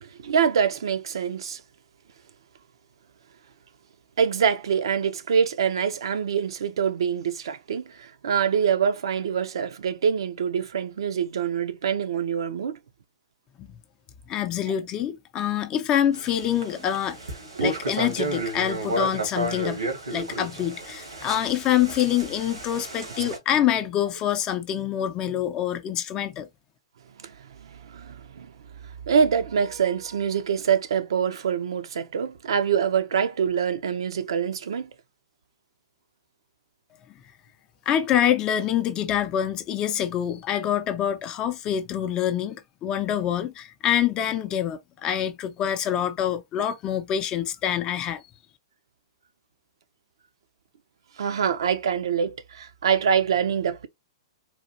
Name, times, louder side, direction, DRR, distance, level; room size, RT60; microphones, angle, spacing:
voice 1, 0.0-1.6 4.2-12.8 17.6-17.7 23.2-23.3 27.2-28.5 29.1-34.9 51.2-53.9, right 7 dB, 70° right, 0.7 m, -25 dB
voice 2, 14.3-17.2 17.6-19.8 20.1-26.5 37.9-48.2, left 10 dB, 30° left, 0.5 m, -26 dB
sound 1, 16.1-23.4, right 2 dB, 85° right, 1.9 m, -32 dB
4.0 x 2.4 x 2.8 m
figure-of-eight pair, 110°, 3 cm